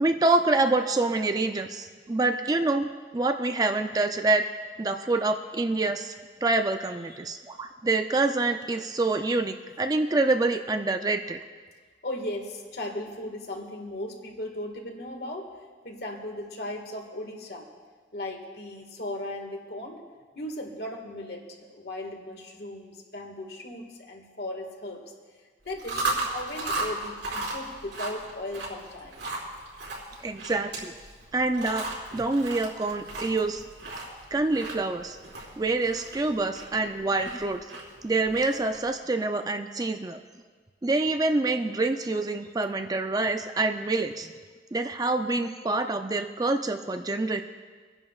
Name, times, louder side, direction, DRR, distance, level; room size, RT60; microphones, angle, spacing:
voice 1, 0.0-4.5 4.8-6.1 6.4-11.4 30.2-30.9 31.3-31.9 32.1-33.6 34.3-35.2 35.6-37.6 38.0-40.2 40.8-44.3 44.7-47.4, right 2 dB, 20° right, 7 dB, 0.4 m, -26 dB
voice 2, 12.0-15.5 15.8-17.7 18.1-20.0 20.4-21.4 21.7-25.0 25.7-29.3, left 1 dB, 60° left, 2 dB, 1.8 m, -37 dB
Chewing mastication, 25.7-38.9, right 2 dB, 80° right, 4.4 m, -36 dB
26.0 x 10.5 x 2.4 m, 1.5 s
head